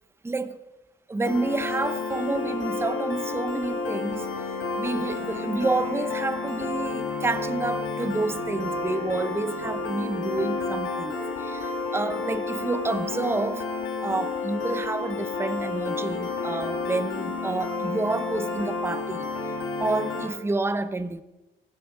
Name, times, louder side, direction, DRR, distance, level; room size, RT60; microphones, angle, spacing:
voice 1, 0.2-0.6 1.1-13.7 14.0-19.3 19.8-21.2, right 3 dB, 10° right, 0.6 m, -29 dB
Piano, 1.2-20.3, left 4 dB, 85° left, 2.3 m, -31 dB
15.0 x 12.0 x 3.7 m
cardioid pair, 90°, 20 cm